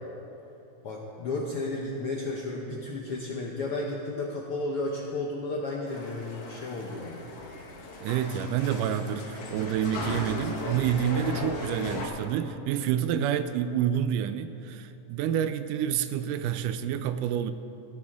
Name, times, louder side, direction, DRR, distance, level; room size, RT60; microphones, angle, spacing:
voice 1, 0.8-7.2, left 2 dB, 75° left, -1 dB, 1.3 m, -33 dB
sound 1, 5.9-12.1, left 2 dB, 55° left, 2.1 m, -37 dB
voice 2, 8.0-17.5, right 9 dB, 80° right, 11 dB, 2.0 m, -28 dB
16.0 x 13.5 x 3.6 m, 2.9 s
omnidirectional pair, 3.8 m